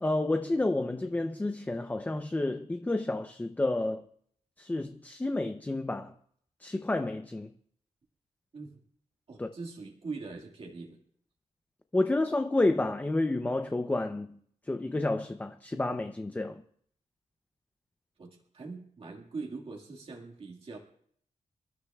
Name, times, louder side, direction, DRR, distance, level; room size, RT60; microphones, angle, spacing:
voice 1, 0.0-4.0 4.6-6.1 6.6-7.5 9.4-9.5 11.9-14.4 14.7-16.6, left 2 dB, 15° left, 0.6 m, -30 dB
voice 2, 9.3-11.0 18.2-20.8, right 4 dB, 50° right, 1.8 m, -42 dB
28.0 x 13.0 x 2.4 m
wide cardioid pair, 155°, 13 cm